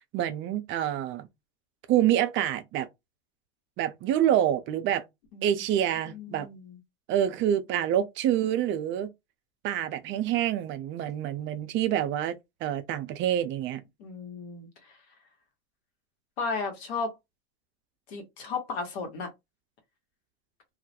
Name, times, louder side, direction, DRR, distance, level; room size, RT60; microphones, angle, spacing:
voice 1, 0.1-1.3 1.9-2.9 3.8-5.0 5.4-6.5 7.1-9.1 9.6-12.3 12.6-13.8, right 11 dB, 40° right, 0.4 m, -27 dB
voice 2, 6.1-6.8 14.0-14.7 16.4-17.1 18.1-19.3, left 4 dB, 80° left, 1.0 m, -34 dB
2.3 x 2.0 x 2.7 m
hypercardioid pair, 105°, 32 cm